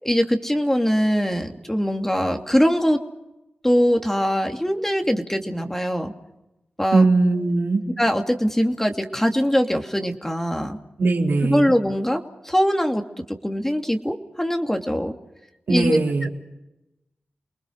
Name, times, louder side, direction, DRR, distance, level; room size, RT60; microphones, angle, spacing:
voice 1, 0.0-3.0 3.6-6.1 6.8-7.0 8.0-10.8 11.4-13.0 13.4-15.1 15.7-16.3, equal, 10° left, 5 dB, 2.6 m, -22 dB
voice 2, 6.9-7.8 11.0-11.7 15.7-16.3, right 3 dB, 75° right, 0 dB, 3.4 m, -20 dB
29.0 x 20.5 x 6.5 m, 0.95 s
cardioid pair, 40°, 4 cm